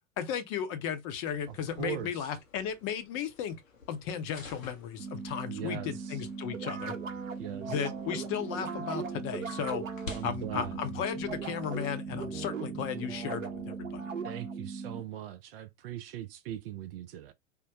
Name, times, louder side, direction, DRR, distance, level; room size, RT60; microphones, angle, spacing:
voice 1, 0.2-3.6 3.9-6.9 7.7-9.8 10.2-14.0, left 8 dB, 35° left, 0.7 m, -35 dB
sound 1, 1.2-11.8, left 3 dB, 85° left, 0.9 m, -51 dB
voice 2, 1.5-2.3 5.5-6.2 7.4-7.7 10.1-10.8 14.2-17.3, right 11 dB, 50° right, 0.5 m, -40 dB
sound 2, 5.0-15.0, right 4 dB, 30° right, 0.9 m, -40 dB
sound 3, 6.5-14.6, right 6 dB, 75° right, 0.7 m, -40 dB
3.6 x 2.1 x 2.7 m
figure-of-eight pair, 90°, 39 cm